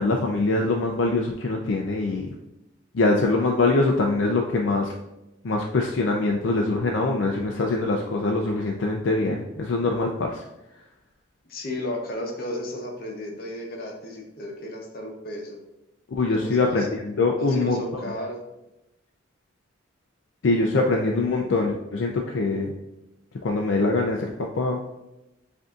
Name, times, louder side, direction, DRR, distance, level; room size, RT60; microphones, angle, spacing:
voice 1, 0.0-2.3 2.9-4.9 5.4-10.4 16.1-16.8 17.2-17.8 20.4-22.7 23.4-24.3 24.6-24.8, left 3 dB, 70° left, 1 dB, 0.4 m, -23 dB
voice 2, 11.5-15.6 16.3-16.9 17.4-18.4, left 1 dB, 45° left, 0 dB, 0.8 m, -33 dB
7.5 x 2.7 x 2.4 m, 0.95 s
head